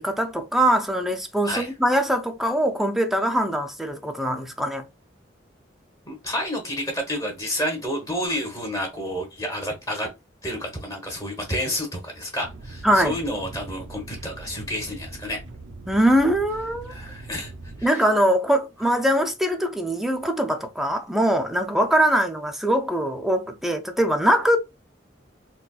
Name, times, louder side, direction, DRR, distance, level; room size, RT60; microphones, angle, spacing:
voice 1, 0.0-4.9 12.8-13.1 15.9-17.0 17.8-24.6, right 1 dB, ahead, 0.4 m, -22 dB
voice 2, 6.1-10.1 10.4-15.4 16.9-17.5 17.8-18.0, equal, 20° left, 1.0 m, -30 dB
sound 1, 12.4-17.9, right 2 dB, 80° right, 0.5 m, -41 dB
4.0 x 2.2 x 2.3 m
head